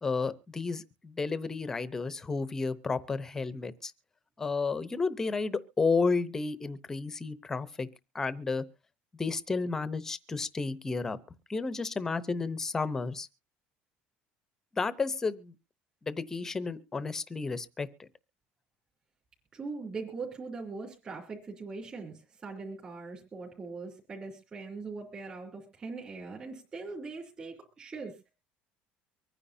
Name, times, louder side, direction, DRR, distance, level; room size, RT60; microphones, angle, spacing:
voice 1, 0.0-3.9 4.4-7.9 8.1-8.6 9.2-11.2 11.5-13.3 14.7-15.5 16.0-18.1, left 4 dB, 15° left, 0.8 m, -32 dB
voice 2, 19.5-28.3, right 4 dB, 25° right, 3.2 m, -41 dB
24.0 x 9.8 x 2.7 m
cardioid pair, 165°, 3 cm